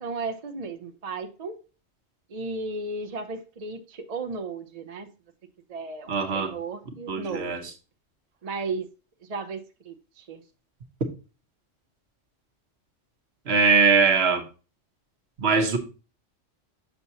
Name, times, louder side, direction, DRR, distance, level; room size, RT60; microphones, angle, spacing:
voice 1, 0.0-1.6 2.3-5.1 5.7-7.5 8.4-8.9 9.2-9.6 9.8-10.4, right 3 dB, 40° right, 0.6 m, -34 dB
voice 2, 6.1-6.5 7.1-7.6 13.5-14.4 15.4-15.8, right 5 dB, 60° right, 1.2 m, -21 dB
6.7 x 5.9 x 2.7 m
omnidirectional pair, 1.3 m